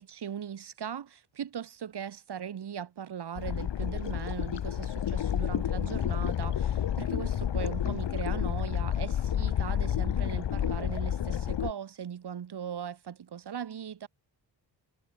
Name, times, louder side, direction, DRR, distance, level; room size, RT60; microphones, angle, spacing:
voice 1, 0.0-14.1, right 8 dB, 60° right, 7.1 m, -39 dB
sound 1, 3.4-11.7, left 10 dB, 70° left, 3.4 m, -30 dB
wide cardioid pair, 155°, 44 cm